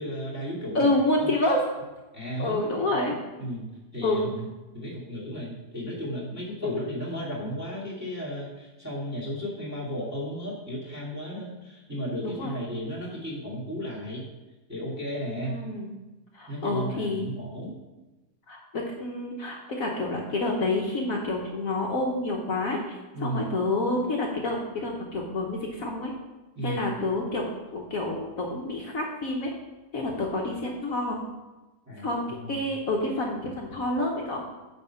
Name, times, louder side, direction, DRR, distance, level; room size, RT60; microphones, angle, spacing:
voice 1, 0.0-0.9 1.2-1.3 2.1-2.6 3.4-3.7 3.9-4.5 4.7-14.3 14.7-15.6 16.5-17.8 23.1-23.5 26.6-26.8 31.9-32.6, equal, 10° right, -8 dB, 2.2 m, -34 dB
voice 2, 0.7-1.6 2.4-3.2 4.0-4.3 6.6-6.7 12.2-12.5 15.4-15.9 16.3-17.2 18.5-26.1 26.6-27.4 27.7-29.5 29.9-31.2 32.0-34.4, left 2 dB, 60° left, -1 dB, 1.3 m, -28 dB
9.2 x 4.1 x 5.6 m, 1.1 s
omnidirectional pair, 1.8 m